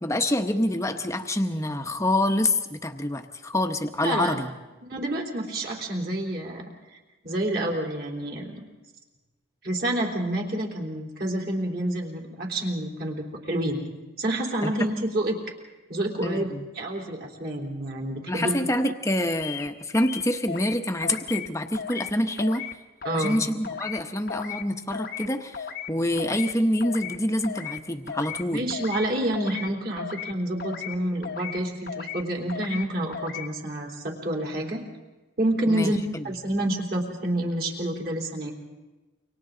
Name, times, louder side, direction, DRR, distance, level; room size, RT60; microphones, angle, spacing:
voice 1, 0.0-4.5 14.6-14.9 16.2-16.6 18.3-22.7 23.1-28.6 35.7-36.3, left 1 dB, 15° left, 6 dB, 1.0 m, -26 dB
voice 2, 4.0-4.4 4.9-6.6 6.9-7.0 7.2-8.6 9.6-13.8 14.2-15.4 15.9-18.5 23.0-23.4 28.5-34.8 35.4-36.0 36.2-38.5, right 1 dB, 50° right, 0 dB, 3.9 m, -28 dB
sound 1, 19.4-19.7 19.9-20.7 21.0-21.5 21.7-22.1 22.4-22.7 23.0-23.4 23.6-24.0 24.3-24.6 24.9-25.3 25.5-25.9 26.2-26.5 26.8-27.2 27.4-27.8 28.1-28.4 28.7-29.1 29.3-29.7 30.0-30.3 30.6-31.0 31.2-31.6 31.9-32.2 32.5-32.8 33.1-33.5, left 8 dB, 50° left, 1.1 m, -35 dB
29.0 x 25.0 x 3.9 m, 1.2 s
head